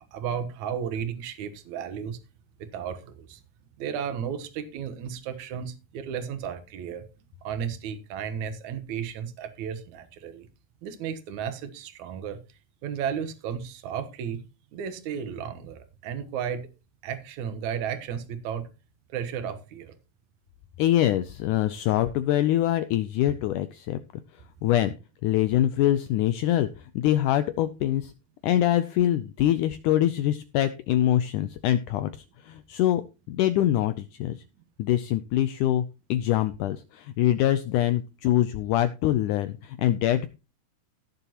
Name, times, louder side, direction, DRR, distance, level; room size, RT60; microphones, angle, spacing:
voice 1, 0.0-2.2 2.6-3.4 3.8-7.0 7.4-10.5 10.8-12.4 12.8-14.5 14.7-16.7 17.0-18.7 19.1-20.0, right 8 dB, 60° right, 2.3 m, -34 dB
voice 2, 20.8-24.0 24.6-24.9 25.2-26.7 27.0-28.1 28.4-32.1 32.4-33.0 33.3-34.4 34.8-35.8 36.1-40.3, left 12 dB, 85° left, 1.8 m, -24 dB
17.0 x 6.9 x 3.0 m
omnidirectional pair, 4.3 m